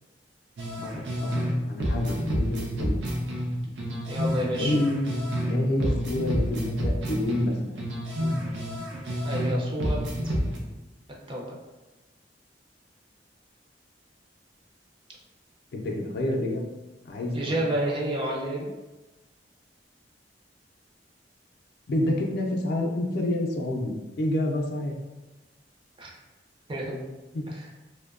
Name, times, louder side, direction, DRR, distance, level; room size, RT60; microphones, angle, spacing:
sound 1, 0.6-1.5 1.8-5.5 5.8-9.5 9.8-10.6, equal, 90° right, 0.5 m, -29 dB
voice 1, 1.2-3.0 4.6-5.0 5.4-7.7 15.7-16.7 17.0-17.7 21.9-25.0 27.3-27.4, left 1 dB, 60° left, 1 dB, 0.4 m, -28 dB
voice 2, 4.1-4.7 9.2-10.0 11.3-11.6 17.3-18.7 26.0-26.1 26.7-27.0 27.5-27.7, right 1 dB, 30° right, -3 dB, 0.5 m, -30 dB
2.6 x 2.1 x 2.4 m, 1.1 s
head